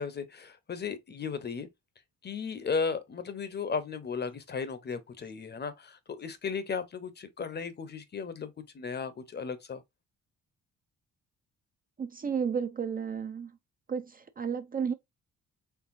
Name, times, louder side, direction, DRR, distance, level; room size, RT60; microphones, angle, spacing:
voice 1, 0.0-1.7 2.2-9.8, left 5 dB, 35° left, 0.7 m, -35 dB
voice 2, 12.0-13.5 13.9-14.9, right 6 dB, 30° right, 0.4 m, -32 dB
4.5 x 3.2 x 2.5 m
cardioid pair, 90°, 30 cm